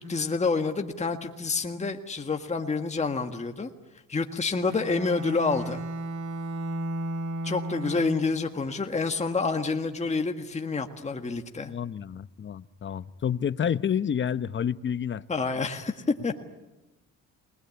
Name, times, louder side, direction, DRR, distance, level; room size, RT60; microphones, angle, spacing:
voice 1, 0.0-3.7 4.1-5.8 7.4-11.7 15.3-16.4, left 4 dB, 20° left, 1.7 m, -28 dB
Bowed string instrument, 4.6-8.4, right 1 dB, 75° right, 2.4 m, -34 dB
voice 2, 11.6-15.2, left 8 dB, 40° left, 0.8 m, -29 dB
28.5 x 20.0 x 9.7 m
cardioid pair, 90°, 30 cm